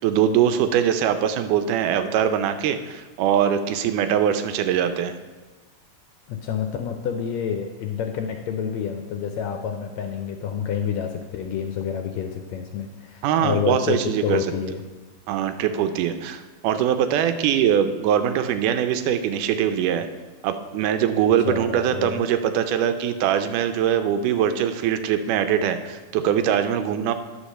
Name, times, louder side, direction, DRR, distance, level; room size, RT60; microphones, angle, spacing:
voice 1, 0.0-5.1 13.2-14.4 15.3-20.1 20.4-27.1, right 9 dB, 85° right, 9 dB, 2.2 m, -22 dB
voice 2, 6.3-14.8 21.4-22.2, left 7 dB, 80° left, 5 dB, 1.6 m, -28 dB
10.5 x 4.8 x 6.5 m, 1.3 s
omnidirectional pair, 3.6 m